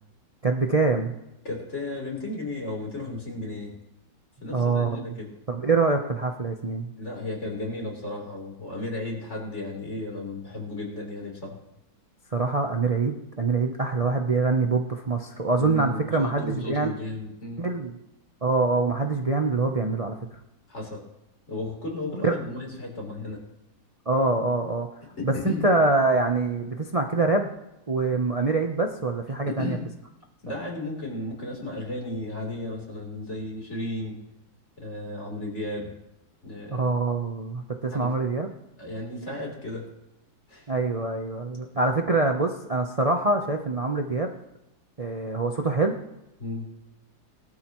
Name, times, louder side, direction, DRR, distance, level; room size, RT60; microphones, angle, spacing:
voice 1, 0.4-1.1 4.5-5.1 5.5-6.9 12.3-16.9 17.6-18.0 18.4-20.2 22.2-22.3 24.1-24.9 25.2-27.5 27.9-29.8 36.7-38.6 40.7-44.3 45.0-45.9, right 3 dB, 70° right, 3 dB, 0.3 m, -25 dB
voice 2, 1.4-3.7 4.4-5.3 7.0-11.6 15.6-17.6 20.7-21.0 21.5-23.4 25.2-25.7 29.5-29.8 30.4-34.2 34.8-35.9 36.4-36.8 37.9-38.1 38.8-39.9 40.5-40.6 46.4-46.7, left 2 dB, 35° left, -1 dB, 4.0 m, -34 dB
20.0 x 12.5 x 3.1 m, 0.88 s
omnidirectional pair, 2.1 m